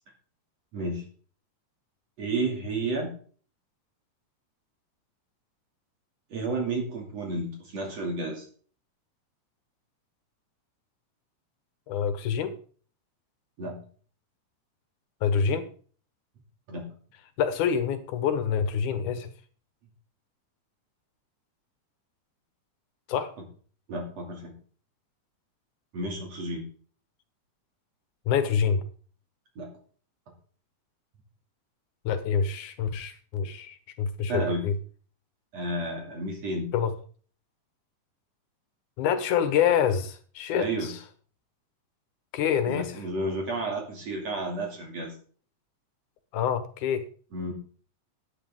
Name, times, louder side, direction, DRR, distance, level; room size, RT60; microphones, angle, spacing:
voice 1, 0.7-1.0 2.2-3.1 6.3-8.5 13.6-13.8 16.7-16.9 23.9-24.5 25.9-26.6 29.6-29.7 34.3-34.6 35.5-36.7 40.5-40.9 42.7-45.2 47.3-47.5, right 2 dB, 60° right, 0 dB, 3.7 m, -31 dB
voice 2, 11.9-12.5 15.2-15.7 17.4-19.3 23.1-23.3 28.3-28.8 32.1-34.7 36.7-36.9 39.0-41.0 42.3-43.0 46.3-47.0, left 7 dB, 90° left, 10 dB, 2.7 m, -26 dB
13.5 x 10.0 x 3.7 m, 0.42 s
omnidirectional pair, 3.4 m